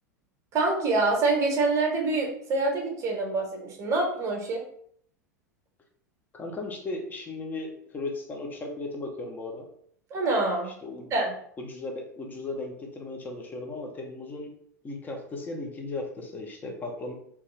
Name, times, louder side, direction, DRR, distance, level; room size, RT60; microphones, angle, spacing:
voice 1, 0.5-4.6 10.1-10.7 11.1-11.3, right 3 dB, 30° right, 0 dB, 0.8 m, -26 dB
voice 2, 6.3-9.7 10.8-11.1 11.6-14.5 14.8-17.1, left 2 dB, 20° left, 2 dB, 0.5 m, -36 dB
2.3 x 2.3 x 3.0 m, 0.66 s
figure-of-eight pair, 85°, 9 cm